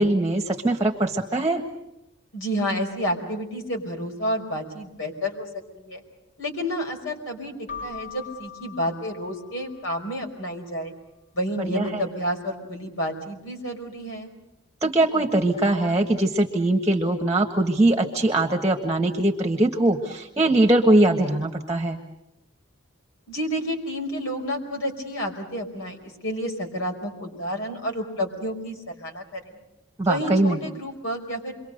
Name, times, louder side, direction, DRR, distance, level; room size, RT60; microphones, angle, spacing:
voice 1, 0.0-1.6 11.7-12.0 14.8-22.0 30.0-30.6, right 1 dB, 15° right, 4 dB, 1.5 m, -21 dB
voice 2, 2.3-5.5 5.8-6.0 6.4-10.9 11.3-14.3 23.3-29.6 30.0-31.5, equal, 80° left, 2 dB, 5.0 m, -30 dB
Keyboard (musical), 7.7-10.2, left 6 dB, 35° left, 7.0 m, -41 dB
28.5 x 23.5 x 6.6 m, 0.89 s
head